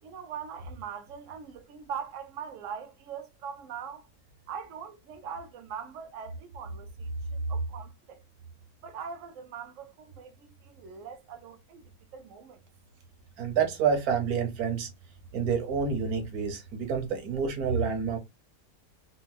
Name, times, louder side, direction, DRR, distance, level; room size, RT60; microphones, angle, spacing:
voice 1, 0.0-4.1 4.5-8.2 8.8-12.6, right 7 dB, 65° right, 0.9 m, -42 dB
voice 2, 13.4-14.9 15.3-18.2, right 6 dB, 85° right, 1.4 m, -28 dB
4.4 x 2.2 x 2.2 m
omnidirectional pair, 1.5 m